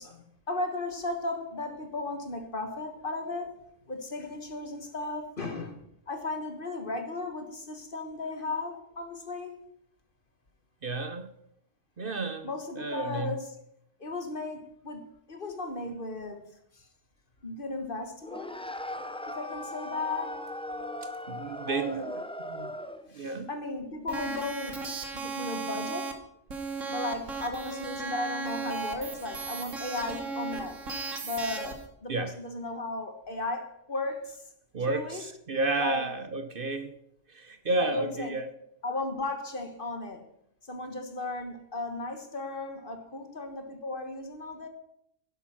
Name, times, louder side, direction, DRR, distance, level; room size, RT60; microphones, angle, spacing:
voice 1, 0.0-3.5 3.9-9.6 12.4-13.6 14.0-16.9 17.4-18.6 19.3-20.5 21.6-22.1 23.1-26.1 26.9-30.8 31.2-34.4 34.9-35.2 35.8-36.1 37.8-38.4 38.8-40.2 40.7-44.7, left 2 dB, 45° left, 7 dB, 1.7 m, -35 dB
voice 2, 10.8-11.3 12.0-12.5 12.8-13.3 21.0-21.9 22.5-22.7 23.1-23.5 32.1-32.4 34.7-36.9 37.3-38.5, right 3 dB, 50° right, 9 dB, 1.0 m, -31 dB
sound 1, 18.2-23.1, left 1 dB, 5° left, 0.7 m, -38 dB
sound 2, 24.1-26.1 26.5-31.9, right 4 dB, 75° right, 2.0 m, -36 dB
11.0 x 11.0 x 5.9 m, 0.74 s
omnidirectional pair, 1.3 m